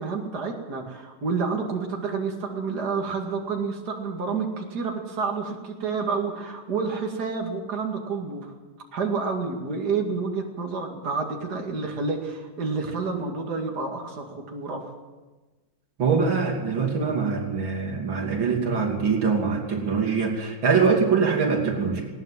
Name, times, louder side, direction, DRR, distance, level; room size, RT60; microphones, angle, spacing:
voice 1, 0.0-8.5 8.9-14.9, right 4 dB, 55° right, 1 dB, 2.9 m, -29 dB
voice 2, 16.0-22.1, right 5 dB, 85° right, 1 dB, 3.7 m, -23 dB
20.0 x 18.5 x 7.6 m, 1.2 s
omnidirectional pair, 2.1 m